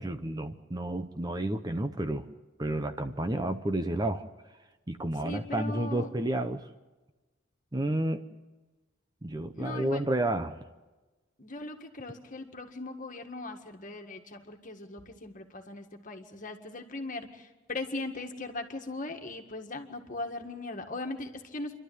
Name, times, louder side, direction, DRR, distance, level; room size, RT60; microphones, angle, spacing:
voice 1, 0.0-2.3 2.6-4.3 4.9-6.7 7.7-8.2 9.2-10.6, right 1 dB, 20° right, 8 dB, 0.8 m, -31 dB
voice 2, 5.2-6.1 9.5-10.0 11.4-21.8, left 2 dB, 40° left, 5 dB, 1.9 m, -39 dB
28.0 x 12.5 x 9.4 m, 1.2 s
head